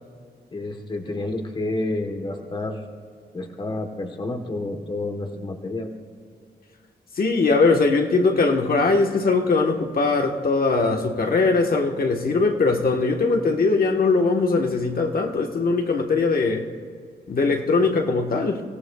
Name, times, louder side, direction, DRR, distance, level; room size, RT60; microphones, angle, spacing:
voice 1, 0.5-2.8 3.3-5.9, left 2 dB, 25° left, 4 dB, 1.2 m, -29 dB
voice 2, 7.2-16.7 17.3-18.6, left 3 dB, 55° left, 3 dB, 1.3 m, -21 dB
30.0 x 17.5 x 2.3 m, 2.2 s
wide cardioid pair, 170°, 18 cm